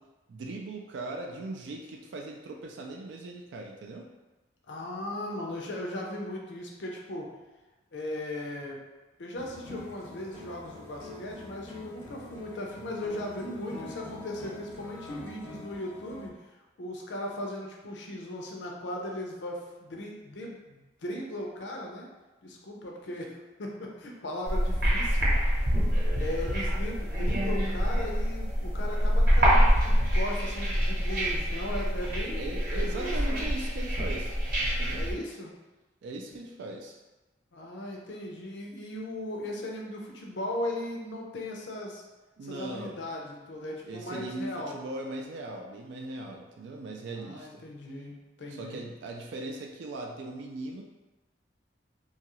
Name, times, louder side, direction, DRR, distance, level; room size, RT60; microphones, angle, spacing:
voice 1, 0.3-4.1 32.3-35.1 36.0-37.0 42.4-43.0 43.8-47.6 48.5-50.8, right 2 dB, 70° right, 1 dB, 0.3 m, -39 dB
voice 2, 4.7-7.3 7.9-8.8 9.2-22.1 22.4-25.3 26.2-33.4 35.0-35.5 37.5-42.0 42.4-44.8 47.1-48.8, left 1 dB, 70° left, -1 dB, 0.5 m, -37 dB
sound 1, 9.4-16.3, left 2 dB, 15° left, 0.6 m, -45 dB
sound 2, 24.4-35.1, equal, 55° right, 0.8 m, -26 dB
2.7 x 2.3 x 3.0 m, 1.1 s
head